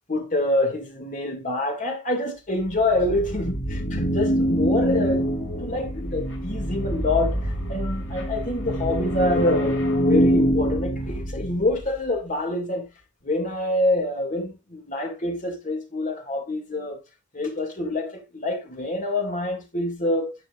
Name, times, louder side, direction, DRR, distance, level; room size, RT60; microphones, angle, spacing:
voice 1, 0.1-5.3 5.6-12.9 13.2-17.0 17.3-20.3, left 2 dB, 40° left, 2.2 m, -26 dB
sound 1, 2.6-12.0, equal, 75° left, 2.9 m, -25 dB
11.0 x 6.0 x 2.5 m
head